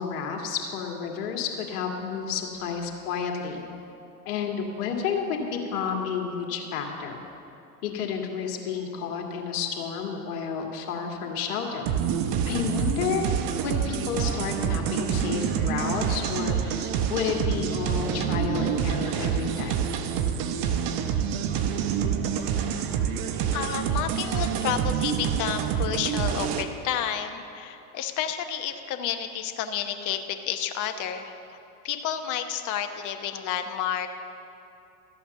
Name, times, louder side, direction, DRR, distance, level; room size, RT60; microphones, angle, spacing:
voice 1, 0.0-3.6 4.3-7.2 7.8-11.9 12.4-13.3 13.6-19.8, left 6 dB, 65° left, 1 dB, 2.1 m, -31 dB
sound 1, 11.9-26.6, right 8 dB, 45° right, 0.9 m, -27 dB
voice 2, 23.5-31.3 31.8-34.1, left 9 dB, 40° left, 7 dB, 1.1 m, -30 dB
13.0 x 8.5 x 6.7 m, 2.8 s
hypercardioid pair, 100°, 46 cm